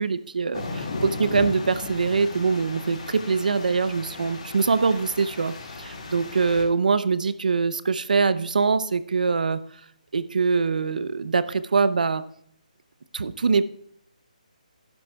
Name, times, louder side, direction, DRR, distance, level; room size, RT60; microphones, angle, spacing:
voice 1, 0.0-9.6 10.1-12.2 13.1-13.7, right 4 dB, 75° right, 14 dB, 0.7 m, -23 dB
sound 1, 0.5-6.6, left 2 dB, 45° left, 4.0 m, -35 dB
13.5 x 11.5 x 2.3 m, 0.70 s
hypercardioid pair, 170°, 4 cm